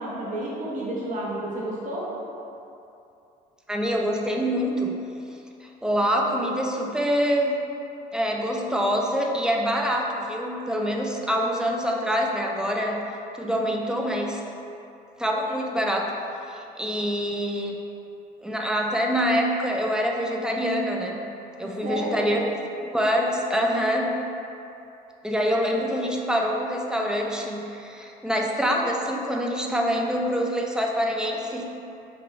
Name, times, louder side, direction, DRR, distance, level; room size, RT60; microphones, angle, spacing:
voice 1, 0.0-2.1 21.6-22.3, right 1 dB, 50° right, -6 dB, 0.9 m, -31 dB
voice 2, 3.7-4.9 5.8-7.6 8.1-13.0 13.4-14.4 15.2-16.1 16.5-17.8 18.4-21.2 21.6-22.4 22.9-24.1 25.2-31.6, equal, 5° right, 0 dB, 0.4 m, -25 dB
3.9 x 2.2 x 4.5 m, 2.8 s
cardioid pair, 110°, 17 cm